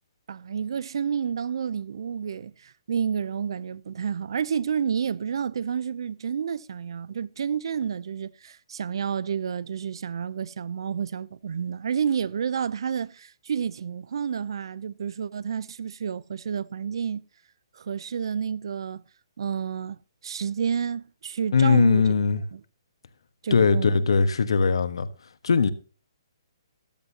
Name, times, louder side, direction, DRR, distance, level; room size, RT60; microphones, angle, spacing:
voice 1, 0.3-17.2 17.7-19.0 19.4-20.0 20.2-22.1 22.5-22.6 23.4-24.0, right 7 dB, 65° right, 0.7 m, -30 dB
voice 2, 21.5-22.4 23.5-25.1 25.4-25.7, left 5 dB, 75° left, 1.4 m, -20 dB
14.0 x 12.5 x 2.9 m
hypercardioid pair, 150°, 3 cm